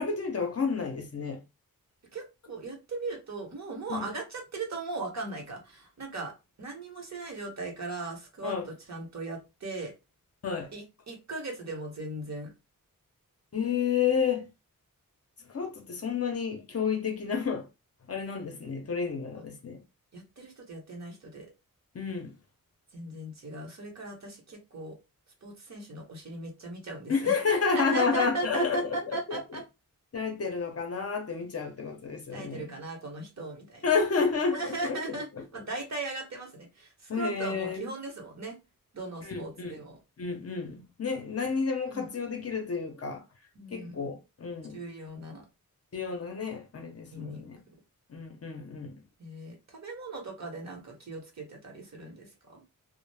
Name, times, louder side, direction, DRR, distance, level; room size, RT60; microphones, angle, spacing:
voice 1, 0.0-1.4 3.9-4.1 8.4-8.7 10.4-10.7 13.5-14.5 15.4-17.7 18.1-19.8 21.9-22.4 27.1-29.4 30.1-32.7 33.8-35.2 37.1-37.8 39.2-39.8 40.2-43.2 43.7-44.8 45.9-47.6 48.1-49.0, left 5 dB, 45° left, 0.6 m, -30 dB
voice 2, 2.1-6.3 6.6-9.9 10.7-12.5 19.3-19.4 20.1-21.5 22.9-25.0 25.4-29.6 32.3-33.9 34.5-35.3 35.5-38.6 38.9-40.0 41.9-42.1 43.5-44.0 44.7-45.5 47.1-47.5 49.2-52.6, right 2 dB, 50° right, 0.9 m, -38 dB
2.4 x 2.0 x 3.2 m
wide cardioid pair, 115°, 35 cm